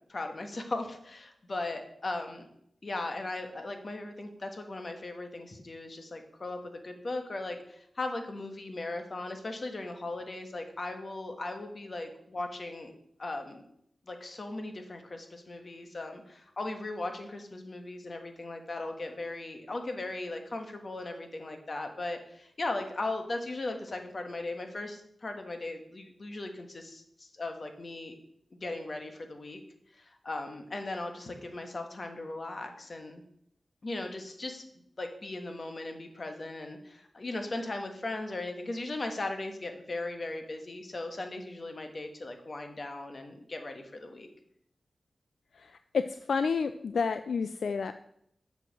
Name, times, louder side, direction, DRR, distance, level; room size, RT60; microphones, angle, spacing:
voice 1, 0.1-2.5 2.8-12.9 13.2-13.6 14.1-28.2 28.5-29.6 29.9-33.2 33.8-34.6 35.0-44.3, left 2 dB, 55° left, 5 dB, 1.4 m, -38 dB
voice 2, 45.6-47.9, left 5 dB, 85° left, 10 dB, 0.3 m, -30 dB
7.7 x 4.7 x 6.2 m, 0.72 s
cardioid pair, 50°, 0 cm